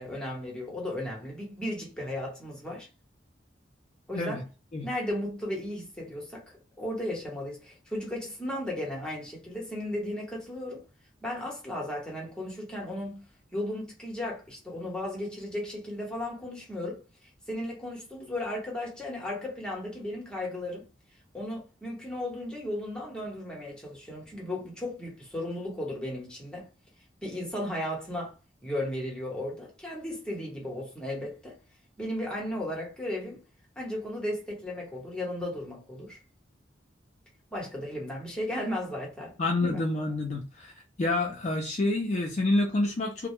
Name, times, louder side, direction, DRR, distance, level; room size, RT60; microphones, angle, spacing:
voice 1, 0.0-2.9 4.1-4.4 4.8-6.4 6.8-10.8 11.2-13.2 13.5-17.0 17.5-20.8 21.3-26.7 27.2-28.3 28.6-31.6 32.0-33.4 33.8-36.2 37.5-39.3 39.6-39.9, left 1 dB, 5° left, 0.9 m, -35 dB
voice 2, 39.4-40.7 41.0-43.3, left 2 dB, 40° left, 0.4 m, -28 dB
2.1 x 2.0 x 2.9 m
head